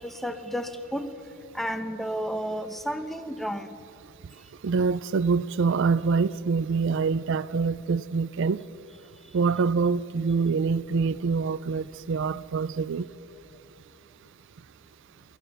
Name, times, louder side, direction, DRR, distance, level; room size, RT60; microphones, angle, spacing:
voice 1, 0.0-1.1 1.5-3.7, equal, ahead, 10 dB, 0.8 m, -32 dB
voice 2, 4.6-8.6 9.3-13.0, right 5 dB, 55° right, 16 dB, 0.4 m, -25 dB
29.0 x 14.0 x 6.8 m, 2.7 s
head